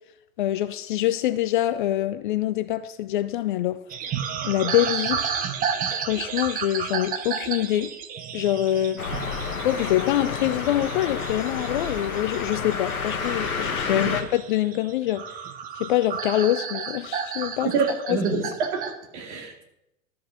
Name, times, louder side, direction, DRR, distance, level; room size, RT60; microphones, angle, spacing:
voice 1, 0.4-3.8 4.5-5.3 5.9-7.9 8.3-9.0 9.6-15.4 15.8-17.7 18.1-18.2, left 13 dB, 40° left, 0.5 m, -25 dB
sound 1, 3.9-18.9, right 7 dB, 20° right, 0.8 m, -32 dB
sound 2, 9.0-14.2, left 5 dB, 85° left, 1.4 m, -30 dB
voice 2, 17.6-19.6, right 4 dB, 55° right, 2.6 m, -27 dB
13.0 x 5.6 x 5.8 m
figure-of-eight pair, 105°, 42 cm